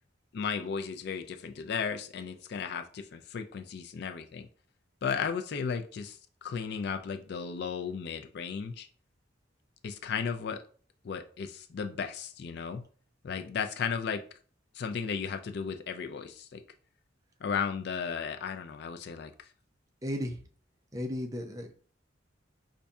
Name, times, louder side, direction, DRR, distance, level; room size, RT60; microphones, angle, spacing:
voice 1, 0.3-4.5 5.0-8.9 9.8-10.6 11.0-12.8 13.2-14.2 14.7-16.6 17.4-19.5, left 6 dB, 60° left, 7 dB, 0.4 m, -35 dB
voice 2, 20.0-20.4 20.9-21.7, equal, 20° right, 4 dB, 0.4 m, -34 dB
5.2 x 2.6 x 2.3 m, 0.43 s
head